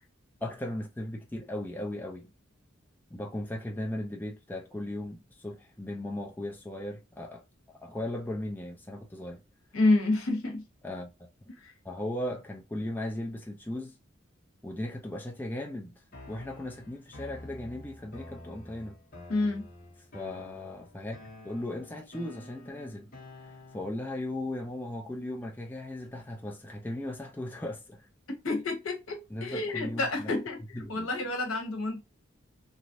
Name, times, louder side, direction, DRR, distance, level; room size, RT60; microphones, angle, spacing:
voice 1, 0.4-2.3 3.1-7.4 7.7-9.4 10.8-11.1 11.4-11.5 11.8-14.0 14.6-16.0 16.3-19.0 20.1-21.2 21.4-23.1 23.4-28.1 29.3-30.3 30.7-31.1, left 1 dB, 10° left, 0.3 m, -37 dB
voice 2, 9.7-10.6 11.6-11.7 19.3-19.7 28.4-32.0, left 2 dB, 75° left, 1.0 m, -29 dB
sound 1, 16.1-24.1, left 1 dB, 40° left, 0.9 m, -49 dB
3.0 x 2.4 x 2.5 m
head